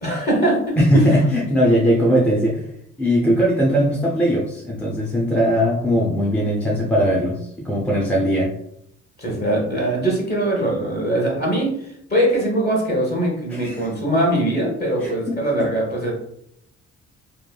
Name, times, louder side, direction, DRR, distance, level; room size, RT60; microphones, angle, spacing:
voice 1, 0.0-1.0 9.2-11.7 12.1-16.1, right 1 dB, 30° left, -2 dB, 1.1 m, -21 dB
voice 2, 0.8-2.7 3.0-8.5 13.5-13.8 15.0-15.4, equal, 5° left, -3 dB, 0.5 m, -19 dB
3.0 x 2.2 x 2.3 m, 0.74 s
cardioid pair, 90°, 30 cm